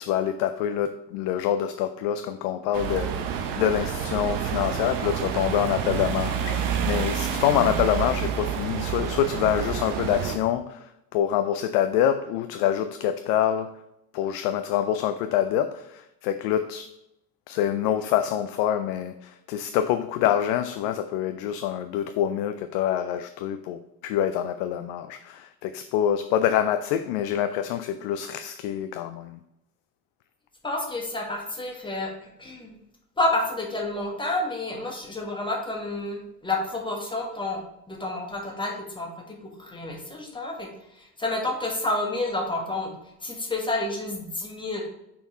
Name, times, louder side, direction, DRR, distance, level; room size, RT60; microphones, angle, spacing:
voice 1, 0.0-13.8 14.1-16.9 17.5-29.4, left 10 dB, 45° left, 9 dB, 0.4 m, -26 dB
sound 1, 2.7-10.4, right 8 dB, 55° right, 1.0 m, -28 dB
voice 2, 30.6-32.8 33.2-42.9 43.2-44.8, left 2 dB, 10° left, 0 dB, 1.6 m, -30 dB
5.5 x 4.3 x 4.2 m, 0.84 s
figure-of-eight pair, 70°, 49 cm